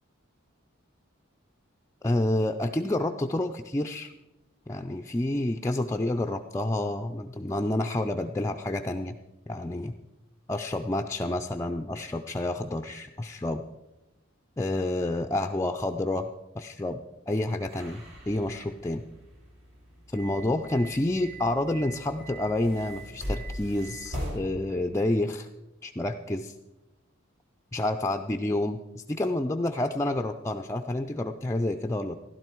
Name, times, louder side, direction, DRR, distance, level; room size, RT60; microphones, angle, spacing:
voice 1, 2.0-4.1 4.7-9.1 9.5-9.9 10.5-13.6 14.6-16.3 16.5-17.0 17.3-19.0 20.1-25.5 25.8-26.5 27.7-32.2, left 1 dB, 15° left, 5 dB, 0.4 m, -29 dB
sound 1, 17.6-24.4, equal, 75° right, 6.5 m, -40 dB
15.5 x 12.0 x 4.5 m, 1.0 s
head